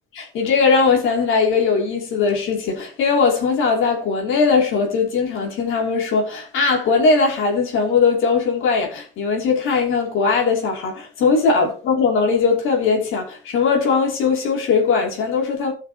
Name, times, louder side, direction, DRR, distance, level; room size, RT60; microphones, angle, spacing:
voice 1, 0.1-15.7, left 5 dB, 85° left, 3.0 m, -19 dB
15.5 x 5.7 x 2.9 m
cardioid pair, 90°, 20 cm